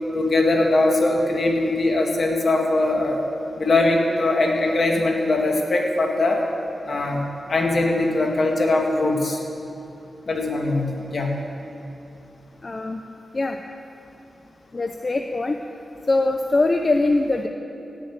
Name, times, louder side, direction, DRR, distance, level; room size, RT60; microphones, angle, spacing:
voice 1, 0.1-3.2 3.6-6.4 6.8-9.4 10.3-11.3, left 2 dB, 55° left, 1 dB, 2.1 m, -21 dB
voice 2, 12.6-13.0 13.3-13.6 14.7-15.6 16.1-17.5, left 2 dB, 35° left, 5 dB, 0.7 m, -22 dB
17.0 x 7.5 x 9.0 m, 2.8 s
wide cardioid pair, 110°, 0 cm